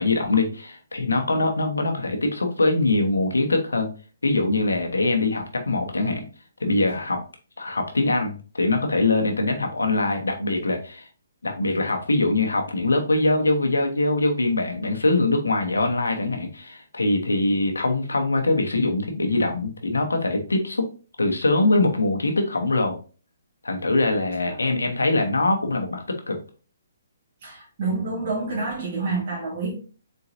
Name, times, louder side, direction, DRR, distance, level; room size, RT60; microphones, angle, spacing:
voice 1, 0.0-3.9 4.2-6.3 6.6-7.2 7.6-11.1 11.4-20.9 21.2-23.0 23.6-26.4, left 2 dB, 85° left, 1.1 m, -23 dB
voice 2, 27.4-29.7, right 3 dB, 45° right, 2.1 m, -28 dB
4.4 x 3.8 x 2.7 m
hypercardioid pair, 140°, 0 cm